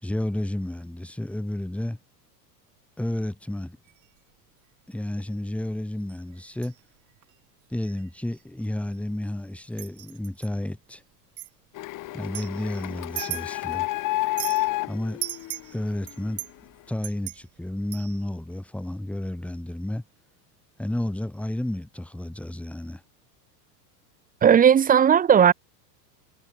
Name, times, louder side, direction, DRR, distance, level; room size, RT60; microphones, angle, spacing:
voice 1, 0.0-2.0 3.0-3.8 4.9-6.7 7.7-11.0 12.1-13.9 14.9-15.2 15.7-16.4 16.9-20.0 20.8-23.0, left 1 dB, 5° left, 5.1 m, -31 dB
sound 1, 3.9-4.2 5.3-5.5 6.1-6.8 7.2-7.3 7.8-8.1 8.3-9.3 9.7-10.5 11.4-11.5 12.2-13.8 14.1-14.7 15.2-18.3, right 16 dB, 35° right, 3.0 m, -38 dB
Printer, 11.8-16.3, left 17 dB, 40° left, 3.5 m, -30 dB
voice 2, 24.4-25.5, right 8 dB, 15° right, 1.0 m, -16 dB
supercardioid pair, 140°, 50 cm